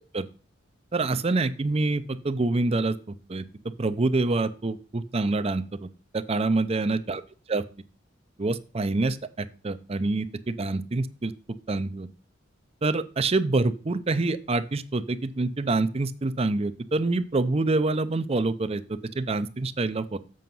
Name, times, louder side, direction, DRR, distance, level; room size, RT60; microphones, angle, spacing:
voice 1, 0.9-3.4 3.8-5.9 6.1-7.2 7.5-7.6 8.4-11.3 11.7-12.1 12.8-20.2, right 2 dB, 30° right, 12 dB, 0.5 m, -26 dB
7.7 x 5.6 x 5.4 m, 0.37 s
head